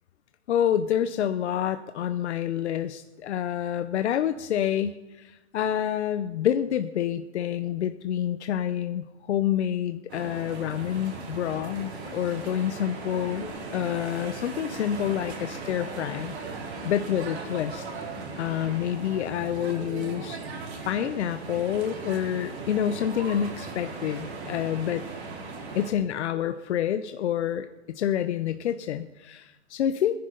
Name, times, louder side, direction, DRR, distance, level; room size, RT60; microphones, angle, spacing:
voice 1, 0.5-16.3 16.8-17.8 18.4-20.4 20.8-25.0 25.7-27.7 27.9-30.2, left 10 dB, 85° left, 9 dB, 0.9 m, -28 dB
sound 1, 10.1-25.9, right 3 dB, 70° right, 4.7 m, -38 dB
21.0 x 11.0 x 3.9 m, 1.1 s
hypercardioid pair, 145°, 33 cm